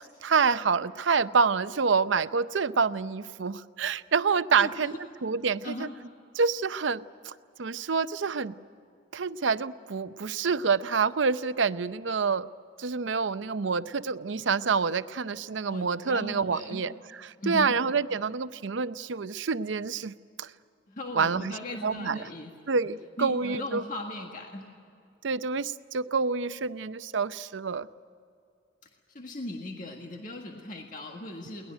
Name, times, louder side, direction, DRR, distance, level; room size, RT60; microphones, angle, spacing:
voice 1, 0.2-5.9 6.3-8.6 9.1-12.5 12.8-16.9 17.2-20.5 21.1-22.3 22.7-23.8 25.2-27.9, right 5 dB, 75° right, 14 dB, 0.6 m, -27 dB
voice 2, 15.7-16.9 17.4-17.8 20.9-22.5 23.2-24.7 29.1-31.7, left 1 dB, 45° left, 2 dB, 1.7 m, -38 dB
22.5 x 19.0 x 9.0 m, 2.5 s
head